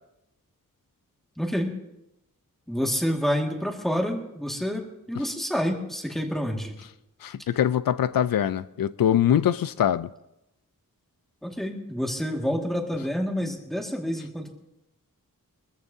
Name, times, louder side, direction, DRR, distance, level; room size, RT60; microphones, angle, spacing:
voice 1, 1.4-1.8 2.7-6.7 11.4-14.5, equal, ahead, 1.9 m, -28 dB
voice 2, 7.2-10.1, left 10 dB, 85° left, 0.5 m, -23 dB
23.5 x 14.5 x 2.7 m
wide cardioid pair, 170°, 34 cm